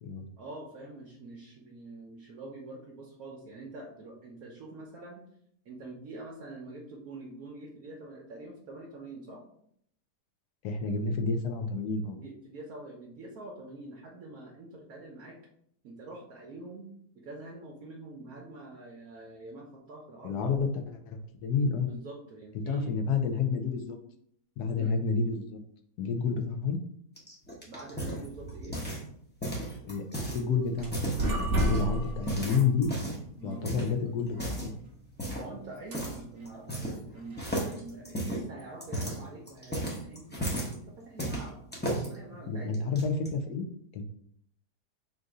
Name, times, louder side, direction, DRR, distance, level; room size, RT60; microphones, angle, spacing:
voice 1, 0.4-5.2 5.6-9.4 12.1-15.4 15.8-20.6 21.8-22.9 24.8-25.0 27.7-28.8 33.4-33.7 35.2-42.9, right 2 dB, 65° right, -2 dB, 1.1 m, -45 dB
voice 2, 10.6-12.2 20.2-21.9 22.7-24.0 24.6-25.6 26.0-26.8 29.9-32.9 33.4-34.7 42.5-43.6 43.9-44.0, left 5 dB, 75° left, 6 dB, 1.1 m, -30 dB
sound 1, 27.2-29.1 29.4-30.4 30.8-31.8 32.3-33.2 33.6-33.9 34.3-34.7 35.2-35.5 35.9-36.2 36.4-37.1 37.4-40.7 41.2-42.1 42.7-43.3, right 1 dB, 10° left, 0.6 m, -34 dB
sound 2, 30.5-38.0, right 1 dB, 50° right, 0.8 m, -35 dB
3.8 x 2.6 x 4.7 m, 0.68 s
omnidirectional pair, 1.8 m